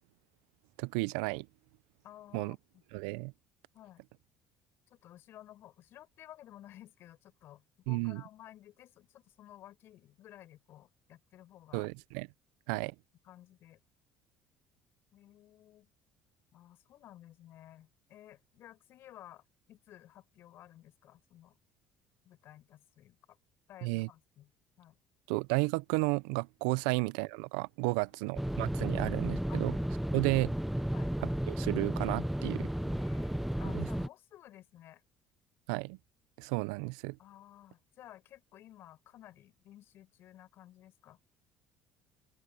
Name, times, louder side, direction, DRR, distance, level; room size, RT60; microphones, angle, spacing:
voice 1, 0.8-1.5 2.3-2.6 2.9-3.3 7.9-8.2 11.7-12.3 12.7-12.9 23.8-24.1 25.3-29.7 30.1-30.5 31.5-32.7 33.7-33.9 35.7-36.0 36.4-37.2, right 27 dB, 80° right, 0.6 m, -32 dB
voice 2, 2.0-2.6 3.7-4.0 4.9-11.9 12.7-12.8 13.2-13.8 15.1-15.9 16.5-19.4 19.7-21.6 22.2-23.4 23.7-24.5 24.8-25.0 26.7-26.8 27.8-28.4 28.9-29.1 29.5-29.6 30.9-31.2 32.8-35.0 37.2-41.2, left 13 dB, 60° left, 7.8 m, -55 dB
sound 1, 28.4-34.1, equal, 5° right, 0.8 m, -33 dB
open air
hypercardioid pair, 65°, 5 cm